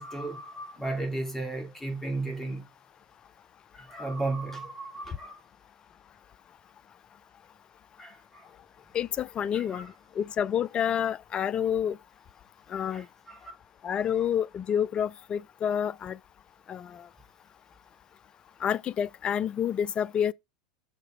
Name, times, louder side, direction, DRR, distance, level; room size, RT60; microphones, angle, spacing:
voice 1, 0.0-2.6 3.7-5.4 8.0-8.5 9.5-9.8 12.9-13.5, right 2 dB, 10° left, 2.7 m, -35 dB
voice 2, 8.9-12.0 12.7-13.1 13.8-16.2 16.7-17.1 18.6-20.3, left 9 dB, 25° left, 0.4 m, -29 dB
6.6 x 4.5 x 4.6 m
figure-of-eight pair, 85°, 4 cm